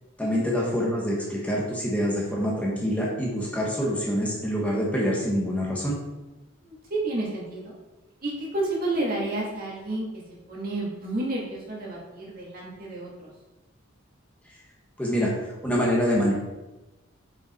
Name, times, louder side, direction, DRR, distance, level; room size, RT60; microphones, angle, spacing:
voice 1, 0.2-6.0 15.0-16.3, equal, 5° left, -4 dB, 1.1 m, -26 dB
voice 2, 6.6-7.7 8.2-10.1 10.5-13.3, right 2 dB, 45° right, -4 dB, 2.0 m, -30 dB
5.5 x 5.1 x 4.4 m, 1.1 s
head